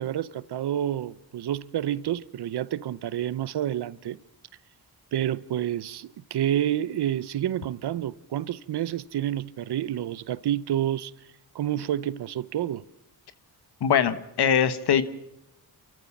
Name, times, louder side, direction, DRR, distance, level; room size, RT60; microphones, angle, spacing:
voice 1, 0.0-4.2 5.1-11.1 11.5-12.8, right 11 dB, 90° right, 0.8 m, -29 dB
voice 2, 13.8-15.0, left 8 dB, 85° left, 1.4 m, -22 dB
28.0 x 14.5 x 7.2 m
cardioid pair, 75°, 38 cm